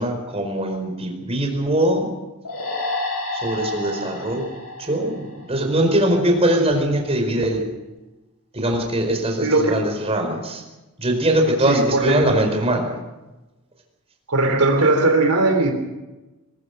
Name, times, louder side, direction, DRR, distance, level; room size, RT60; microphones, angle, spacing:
voice 1, 0.0-2.1 3.3-4.4 4.8-7.6 8.5-10.6 11.0-12.9, right 1 dB, 25° right, 4 dB, 4.8 m, -21 dB
sound 1, 2.4-5.9, left 2 dB, 85° left, 7.6 m, -30 dB
voice 2, 9.4-9.8 11.7-12.3 14.3-15.7, right 2 dB, 80° right, 4 dB, 3.3 m, -18 dB
22.0 x 21.0 x 6.7 m, 1.1 s
head